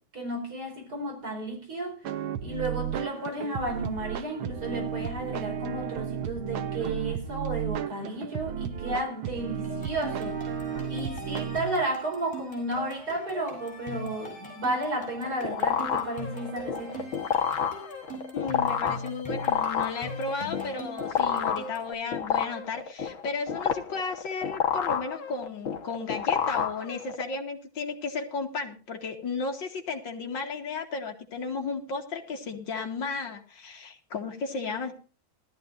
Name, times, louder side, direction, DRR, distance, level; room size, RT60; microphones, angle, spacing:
voice 1, 0.1-2.0 2.4-10.6 10.9-17.1, right 1 dB, 50° right, 5.2 m, -33 dB
sound 1, 2.0-11.6, right 8 dB, 85° right, 1.8 m, -33 dB
sound 2, 9.6-21.9, left 1 dB, 25° left, 8.2 m, -41 dB
sound 3, 14.9-27.3, left 7 dB, 85° left, 2.3 m, -29 dB
voice 2, 18.3-34.9, left 4 dB, 65° left, 2.8 m, -34 dB
19.5 x 14.0 x 2.6 m
omnidirectional pair, 2.1 m